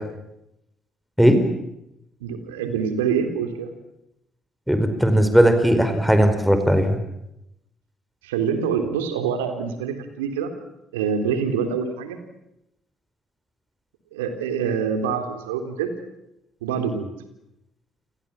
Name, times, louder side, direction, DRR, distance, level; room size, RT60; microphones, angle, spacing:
voice 1, 2.2-3.7 8.2-10.5 10.9-12.2 14.1-15.9 16.6-17.1, right 7 dB, 80° right, 7 dB, 3.5 m, -25 dB
voice 2, 4.7-7.0, equal, 5° right, 8 dB, 4.8 m, -17 dB
29.5 x 24.5 x 7.6 m, 0.85 s
hypercardioid pair, 50°, 0 cm